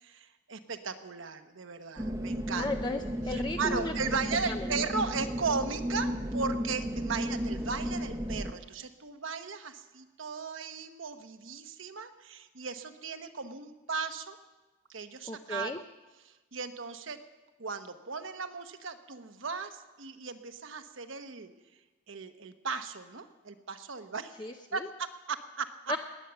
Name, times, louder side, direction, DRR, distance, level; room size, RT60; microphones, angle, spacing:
voice 1, 0.0-2.7 3.3-14.4 14.9-15.8 16.2-17.2 17.6-21.5 22.1-24.3 24.7-25.7, right 5 dB, 70° right, 8 dB, 1.1 m, -36 dB
sound 1, 2.0-8.5, equal, 15° right, 0.8 m, -34 dB
voice 2, 2.6-4.7 15.3-15.8 24.4-24.8 25.9-26.0, left 2 dB, 20° left, 5 dB, 0.5 m, -35 dB
20.0 x 9.2 x 6.9 m, 1.2 s
head